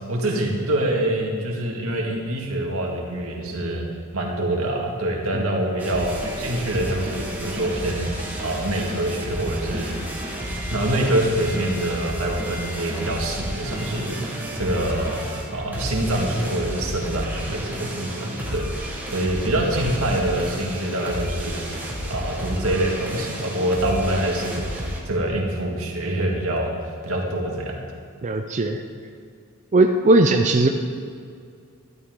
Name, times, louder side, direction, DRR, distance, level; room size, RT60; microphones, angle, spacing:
voice 1, 0.1-3.8 4.1-10.0 10.7-15.2 15.5-24.6 25.1-26.7 27.0-27.8, right 1 dB, 85° right, -1 dB, 2.0 m, -25 dB
sound 1, 5.8-25.0, equal, 10° right, 1.4 m, -31 dB
voice 2, 28.2-28.8 29.7-30.7, right 2 dB, 35° right, 3 dB, 0.5 m, -18 dB
12.0 x 11.5 x 3.8 m, 2.3 s
head